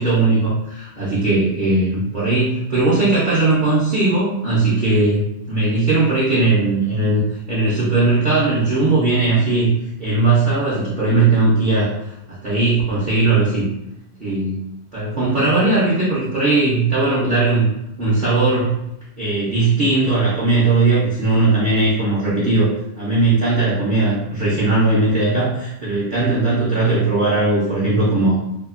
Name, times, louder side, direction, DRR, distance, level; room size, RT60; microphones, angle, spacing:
voice 1, 0.0-5.2 5.5-7.2 7.5-9.7 10.0-11.9 12.3-13.7 14.2-14.6 14.9-17.7 18.0-18.8 19.2-22.7 23.0-28.4, right 3 dB, 50° right, -9 dB, 0.6 m, -18 dB
2.8 x 2.4 x 2.4 m, 0.82 s
omnidirectional pair, 1.6 m